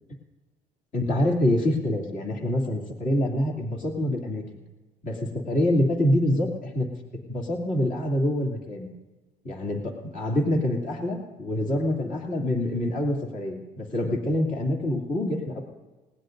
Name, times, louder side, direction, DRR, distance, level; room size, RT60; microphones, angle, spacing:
voice 1, 0.9-4.6 5.0-6.9 7.3-8.9 9.4-15.6, left 1 dB, 50° left, 0 dB, 2.7 m, -26 dB
20.0 x 18.5 x 2.6 m, 1.2 s
cardioid pair, 110°, 17 cm